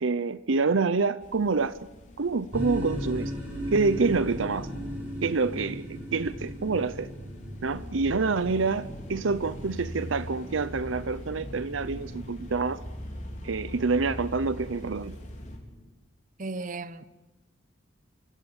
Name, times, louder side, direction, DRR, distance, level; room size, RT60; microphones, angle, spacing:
voice 1, 0.0-1.8 2.2-3.3 3.7-4.7 5.2-7.1 7.6-12.8 13.4-15.1, right 4 dB, 75° right, 0.7 m, -27 dB
sound 1, 1.2-15.6, equal, 40° left, 4.5 m, -43 dB
sound 2, 2.5-15.9, equal, 10° right, 6.0 m, -39 dB
voice 2, 16.4-17.0, right 3 dB, 40° right, 1.0 m, -35 dB
28.5 x 17.0 x 7.2 m
head